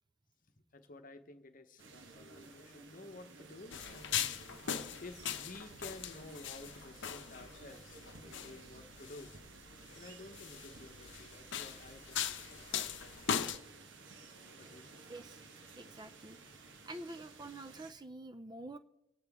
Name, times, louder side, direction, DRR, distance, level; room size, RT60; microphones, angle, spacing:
voice 1, 0.7-4.3 5.0-9.3 9.9-13.7 14.6-15.0, left 2 dB, 40° left, 0.9 m, -53 dB
sound 1, 1.8-17.9, right 3 dB, 60° right, 1.3 m, -55 dB
sound 2, 3.7-13.6, left 8 dB, 60° left, 0.7 m, -40 dB
voice 2, 15.1-15.4 15.8-16.4 16.9-18.8, right 2 dB, 20° right, 0.4 m, -47 dB
25.5 x 8.7 x 3.6 m
head